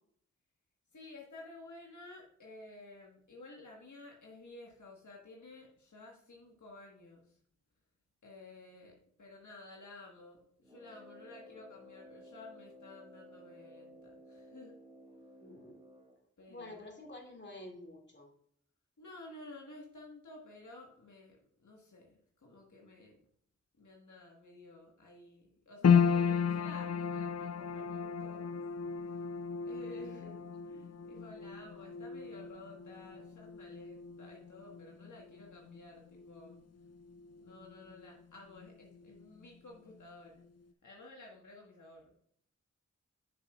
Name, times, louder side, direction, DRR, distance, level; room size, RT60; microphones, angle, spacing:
voice 1, 0.9-7.4 8.2-14.8 16.4-16.8 19.0-23.2 23.8-28.6 29.0-29.3 29.6-30.3 30.7-36.6 37.4-40.5 40.8-42.1, left 2 dB, 80° left, -1 dB, 1.5 m, -53 dB
Brass instrument, 10.6-16.2, left 1 dB, 20° right, 2.2 m, -55 dB
voice 2, 15.4-15.8 16.5-18.3 30.0-30.5, left 1 dB, 35° left, 0 dB, 2.5 m, -49 dB
sound 1, 25.8-38.2 38.5-39.5 39.9-40.0, left 6 dB, 55° left, 0.6 m, -34 dB
8.6 x 6.6 x 2.4 m, 0.63 s
cardioid pair, 45°, 30 cm